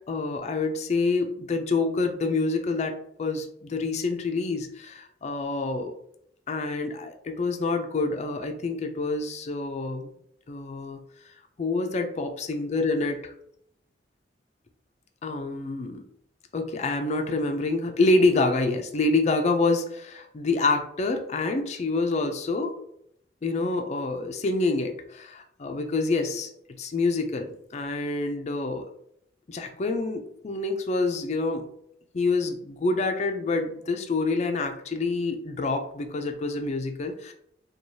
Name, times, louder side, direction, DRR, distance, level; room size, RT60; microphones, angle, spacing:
voice 1, 0.1-2.9 3.2-5.9 6.5-10.1 10.5-11.0 11.6-13.2 15.2-16.0 16.5-22.8 23.4-26.5 26.8-28.9 29.5-31.7 32.1-37.3, left 3 dB, 40° left, 5 dB, 0.4 m, -27 dB
4.6 x 2.3 x 2.7 m, 0.70 s
head